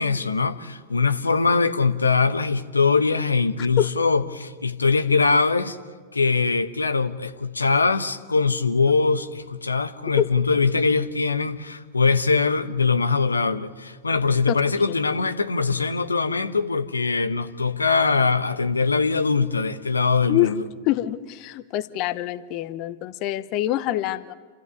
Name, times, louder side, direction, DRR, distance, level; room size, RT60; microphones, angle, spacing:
voice 1, 0.0-5.8 6.1-20.6, left 4 dB, 85° left, 1.1 m, -22 dB
voice 2, 14.5-15.0 20.3-20.5 20.9-24.3, left 14 dB, 45° left, 0.8 m, -25 dB
29.0 x 13.5 x 9.5 m
figure-of-eight pair, 95°, 0 cm